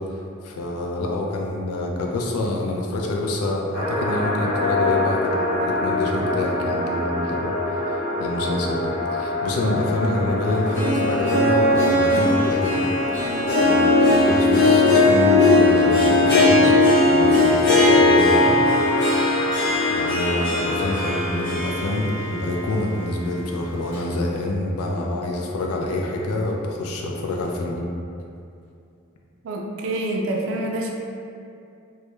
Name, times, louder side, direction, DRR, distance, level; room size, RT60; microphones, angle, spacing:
voice 1, 0.4-7.5 8.2-12.9 13.6-16.7 17.1-18.6 19.2-27.8, left 2 dB, 90° left, 0 dB, 0.4 m, -26 dB
sound 1, 3.7-21.3, left 2 dB, 20° left, 0.8 m, -27 dB
Harp, 10.5-22.6 23.0-23.1 23.9-24.0, left 2 dB, 55° left, 0.9 m, -18 dB
voice 2, 29.4-30.9, right 1 dB, 65° right, 0 dB, 0.3 m, -27 dB
2.2 x 2.1 x 2.9 m, 2.5 s
head